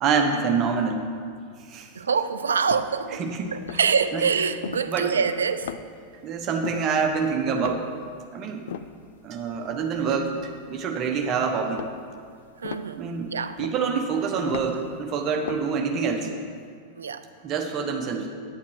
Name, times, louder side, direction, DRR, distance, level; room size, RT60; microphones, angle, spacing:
voice 1, 0.0-1.1 1.6-1.9 3.1-3.6 4.1-4.3 4.9-5.2 6.2-7.9 8.3-8.7 9.2-11.9 13.0-13.3 13.6-16.3 17.4-18.3, right 5 dB, 35° right, 4 dB, 1.1 m, -26 dB
voice 2, 2.0-3.2 3.5-5.7 12.6-13.0 13.3-13.6 17.0-17.2, right 6 dB, 70° right, 12 dB, 0.4 m, -25 dB
sound 1, 2.7-3.2 3.5-4.0 4.5-5.4 5.6-6.1 6.4-8.3 8.5-11.2 11.6-15.0 15.2-15.8, left 9 dB, 60° left, 0.4 m, -38 dB
9.0 x 8.7 x 4.6 m, 2.2 s
figure-of-eight pair, 90°, 0 cm